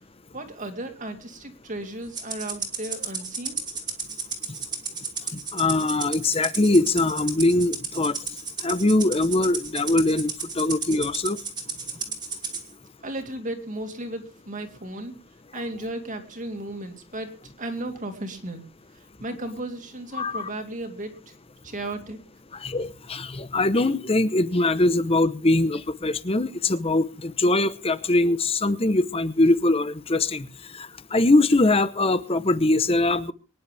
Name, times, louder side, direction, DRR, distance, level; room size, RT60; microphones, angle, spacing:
voice 1, 0.3-3.6 13.0-15.2 15.5-18.6 18.9-21.3 21.6-22.2, right 1 dB, 35° right, 2.3 m, -35 dB
Rattle (instrument), 2.1-12.6, right 5 dB, 20° right, 2.6 m, -33 dB
voice 2, 5.3-8.2 8.6-11.4 20.1-20.5 22.6-30.5 30.7-33.3, left 2 dB, 25° left, 0.8 m, -22 dB
24.5 x 10.5 x 3.4 m
head